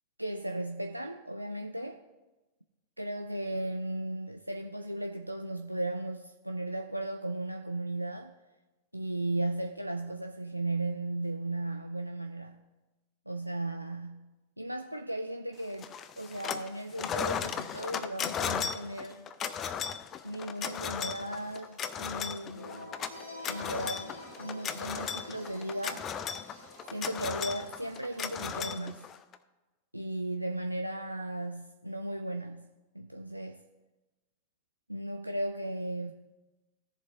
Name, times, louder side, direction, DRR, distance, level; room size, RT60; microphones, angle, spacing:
voice 1, 0.2-2.0 3.0-8.3 8.9-12.7 13.3-15.9 16.2-19.3 20.2-22.9 23.5-26.1 26.9-29.0 29.9-33.6 34.9-36.1, right 1 dB, 90° right, 5 dB, 0.4 m, -36 dB
sound 1, 15.8-16.7 17.0-29.4, left 8 dB, 30° left, 0.6 m, -36 dB
sound 2, 20.6-29.1, left 1 dB, 80° left, 2.7 m, -50 dB
17.0 x 7.1 x 2.6 m, 1.1 s
figure-of-eight pair, 90°, 0 cm